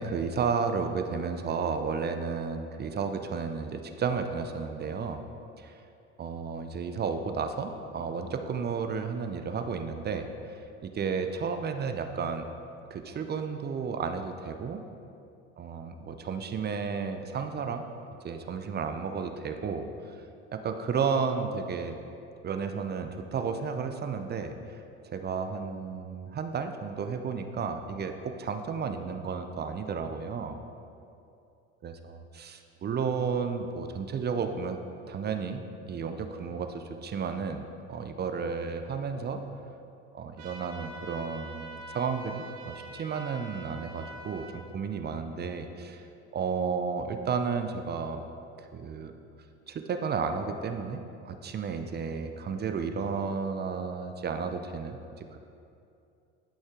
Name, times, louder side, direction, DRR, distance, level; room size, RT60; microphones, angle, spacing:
voice 1, 0.0-5.2 5.6-5.8 6.2-12.5 12.9-14.8 15.6-17.8 18.2-20.2 20.5-22.0 22.4-24.5 25.0-30.6 31.8-34.8 35.1-39.4 40.1-46.1 46.3-48.2 48.6-49.1 49.7-55.4, right 5 dB, 30° right, 7 dB, 0.6 m, -32 dB
sound 1, 40.4-44.6, right 2 dB, 60° right, 1.3 m, -45 dB
12.0 x 5.2 x 3.7 m, 2.6 s
hypercardioid pair, 80°, 34 cm